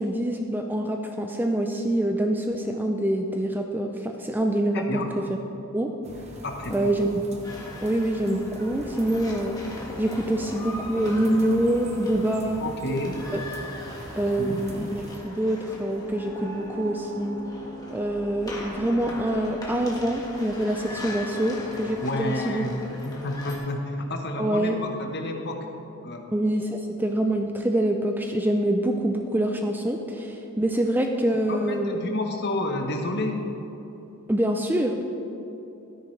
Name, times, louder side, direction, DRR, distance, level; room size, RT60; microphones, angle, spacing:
voice 1, 0.0-4.9 5.2-5.4 5.7-5.9 6.7-7.3 7.8-9.6 10.0-12.6 13.3-13.4 14.1-17.4 17.9-22.6 24.4-24.8 26.3-32.0 34.3-35.0, right 1 dB, 10° right, 4 dB, 0.4 m, -25 dB
voice 2, 4.7-5.1 6.4-7.0 12.6-13.2 14.4-14.6 22.0-25.7 26.0-26.3 31.4-33.5, left 1 dB, 50° left, 3 dB, 0.9 m, -30 dB
sound 1, 6.0-15.2, right 1 dB, 30° right, 0.8 m, -44 dB
sound 2, 7.4-23.6, left 1 dB, 15° left, 1.4 m, -39 dB
13.0 x 10.0 x 3.2 m, 3.0 s
head